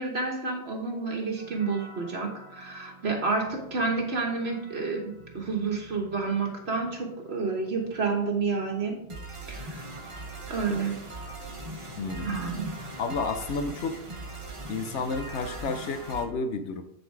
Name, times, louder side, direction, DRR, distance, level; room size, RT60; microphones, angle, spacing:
voice 1, 0.0-8.9 9.5-9.8 10.5-10.9 12.2-12.7, right 4 dB, 65° right, 1 dB, 1.4 m, -29 dB
sound 1, 1.4-16.2, right 2 dB, 30° right, 1.1 m, -42 dB
voice 2, 12.0-12.3 13.0-13.9 14.7-16.8, left 4 dB, 85° left, 8 dB, 1.0 m, -31 dB
10.5 x 4.0 x 4.6 m, 0.82 s
omnidirectional pair, 1.2 m